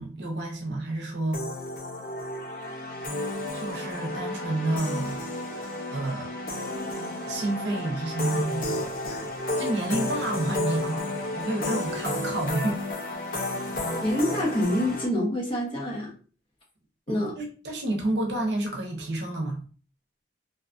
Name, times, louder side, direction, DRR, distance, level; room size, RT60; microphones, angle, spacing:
voice 1, 0.0-1.4 3.5-5.2 5.9-6.3 7.3-8.7 9.1-12.9 17.1-19.6, right 1 dB, 75° right, 0.7 m, -30 dB
sound 1, 1.3-15.1, left 1 dB, 50° left, 0.6 m, -32 dB
voice 2, 14.0-16.1 17.1-17.3, left 1 dB, 30° left, 0.9 m, -26 dB
2.7 x 2.3 x 2.5 m
head